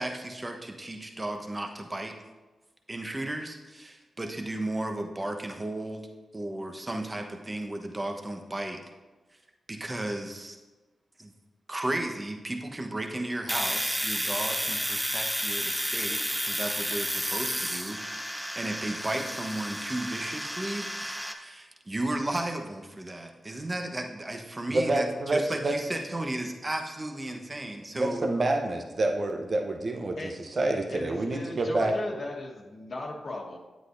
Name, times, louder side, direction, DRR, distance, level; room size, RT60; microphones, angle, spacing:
voice 1, 0.0-2.2 2.9-6.1 6.3-8.8 9.7-10.6 11.2-11.3 11.7-18.2 18.5-28.3, right 1 dB, 30° right, 4 dB, 1.1 m, -34 dB
Domestic sounds home sounds, 13.5-21.3, equal, 5° right, 0.8 m, -31 dB
voice 2, 24.7-25.7 27.9-31.9, right 2 dB, 50° right, 3 dB, 0.8 m, -28 dB
voice 3, 30.9-33.6, left 2 dB, 60° left, -3 dB, 1.3 m, -37 dB
9.6 x 8.0 x 2.6 m, 1.2 s
supercardioid pair, 40°, 0 cm